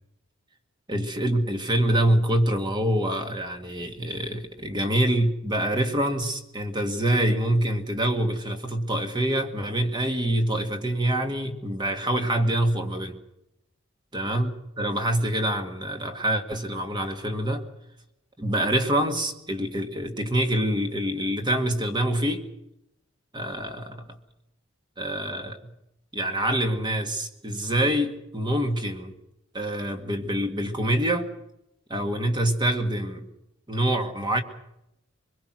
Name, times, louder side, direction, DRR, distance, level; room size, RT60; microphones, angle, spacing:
voice 1, 0.9-13.2 14.1-14.5 14.8-17.7 18.4-22.4 23.3-24.0 25.0-25.6 26.1-29.1 29.5-31.3 31.9-33.3 33.7-34.4, right 1 dB, 20° right, 5 dB, 2.1 m, -25 dB
25.0 x 21.5 x 6.2 m, 0.85 s
head